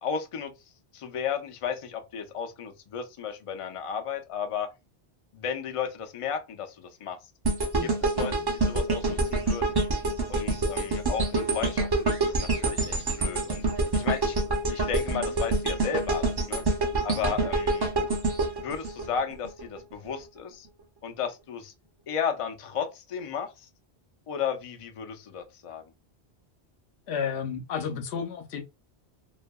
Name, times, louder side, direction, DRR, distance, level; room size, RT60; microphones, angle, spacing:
voice 1, 0.0-0.5 0.9-4.7 5.3-7.2 7.8-9.8 10.3-13.7 13.9-14.4 14.7-16.6 17.0-17.9 18.6-20.7 21.0-21.7 22.1-23.7 24.3-25.8, left 7 dB, 55° left, 0.3 m, -34 dB
sound 1, 7.4-19.6 20.0-20.2, right 2 dB, 30° right, 0.5 m, -27 dB
voice 2, 27.1-28.6, left 6 dB, 85° left, 0.9 m, -32 dB
2.6 x 2.4 x 2.2 m
omnidirectional pair, 1.1 m